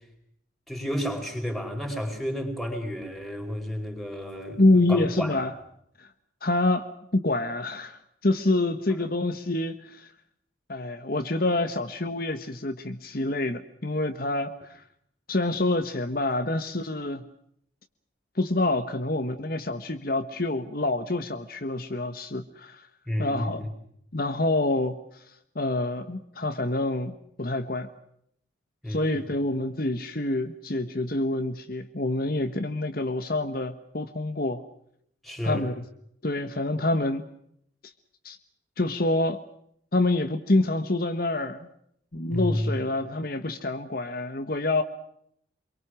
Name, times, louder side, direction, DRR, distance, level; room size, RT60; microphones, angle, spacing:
voice 1, 0.7-4.6 4.9-5.5 23.1-23.7 28.8-29.2 35.2-35.7 42.3-42.8, equal, ahead, 2 dB, 4.9 m, -31 dB
voice 2, 4.6-5.5 6.0-6.1 6.4-10.1 10.7-14.8 15.3-17.2 18.3-22.9 23.2-23.6 24.1-25.2 25.5-27.9 28.9-34.6 35.4-35.8 36.2-37.2 38.2-38.4 38.8-39.4 39.9-41.7 42.1-44.8, left 2 dB, 50° left, 7 dB, 1.4 m, -27 dB
27.0 x 23.5 x 6.3 m, 0.71 s
head